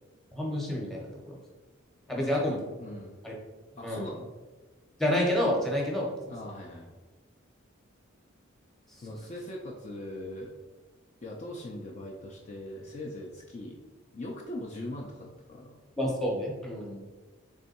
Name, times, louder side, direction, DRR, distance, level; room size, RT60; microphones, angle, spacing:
voice 1, 0.3-1.4 2.1-2.6 3.2-3.3 3.8-4.1 5.0-6.1 16.0-17.0, left 1 dB, ahead, -3 dB, 0.8 m, -29 dB
voice 2, 2.1-3.2 3.8-4.3 6.3-6.9 9.0-10.5 11.2-13.8 14.1-15.8, left 1 dB, 35° left, -2 dB, 0.4 m, -41 dB
3.5 x 3.3 x 4.1 m, 1.3 s
head